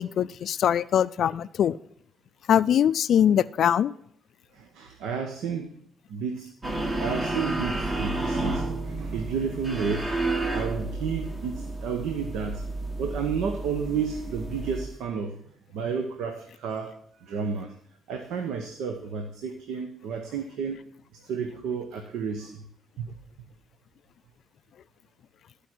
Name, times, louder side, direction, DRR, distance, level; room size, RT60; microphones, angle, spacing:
voice 1, 0.0-1.8 2.5-3.9, left 9 dB, 65° left, 17 dB, 0.3 m, -22 dB
voice 2, 4.5-5.7 6.1-6.5 7.0-10.1 10.4-12.6 13.0-15.4 15.7-17.7 18.1-20.8 21.1-22.6 23.0-23.1, right 6 dB, 90° right, 5 dB, 0.8 m, -31 dB
sound 1, 6.6-14.9, right 2 dB, 30° right, 1.5 m, -31 dB
13.5 x 5.0 x 4.5 m, 0.67 s
cardioid pair, 90°, 0 cm